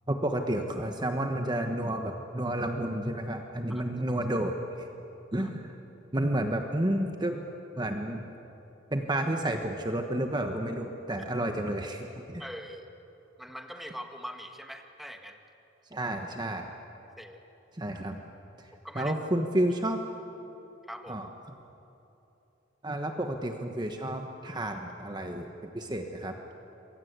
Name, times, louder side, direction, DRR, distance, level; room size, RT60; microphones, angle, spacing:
voice 1, 0.1-4.9 5.3-5.8 6.1-7.4 7.8-8.3 8.9-12.4 15.9-16.7 17.7-18.2 18.6-20.0 21.1-21.5 22.8-26.4, right 1 dB, 25° right, 4 dB, 1.2 m, -31 dB
voice 2, 12.4-12.9 13.4-15.4 17.2-17.4 18.8-19.1 20.9-21.2, equal, ahead, 4 dB, 1.7 m, -42 dB
27.5 x 23.5 x 8.2 m, 3.0 s
head